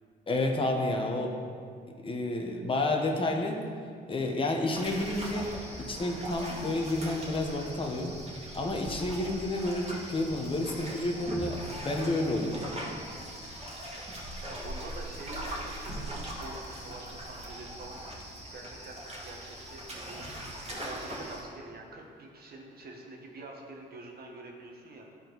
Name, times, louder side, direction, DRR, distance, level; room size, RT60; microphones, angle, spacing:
voice 1, 0.3-1.3 2.0-3.6 4.1-5.5 5.8-8.2 8.5-12.6, left 2 dB, 25° left, 1 dB, 1.1 m, -30 dB
sound 1, 4.7-21.4, right 1 dB, 30° right, 2.1 m, -40 dB
voice 2, 14.5-20.3 20.8-25.1, right 2 dB, 50° right, 0 dB, 1.5 m, -46 dB
12.5 x 4.5 x 4.0 m, 2.2 s
cardioid pair, 90°, 20 cm